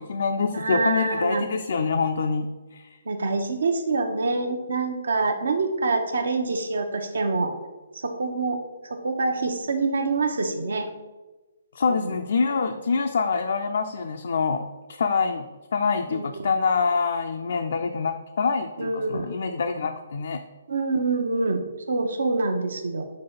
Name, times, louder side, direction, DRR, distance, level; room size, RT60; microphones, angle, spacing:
voice 1, 0.0-3.0 11.8-15.5 15.7-20.4, left 5 dB, 55° left, 5 dB, 0.4 m, -25 dB
voice 2, 0.5-1.5 3.1-7.5 8.0-8.6 9.0-10.9 11.9-12.2 16.1-16.5 18.8-19.3 20.7-21.6 21.9-23.0, right 3 dB, 60° right, 6 dB, 0.8 m, -26 dB
4.8 x 4.0 x 5.4 m, 1.1 s
figure-of-eight pair, 135°, 0 cm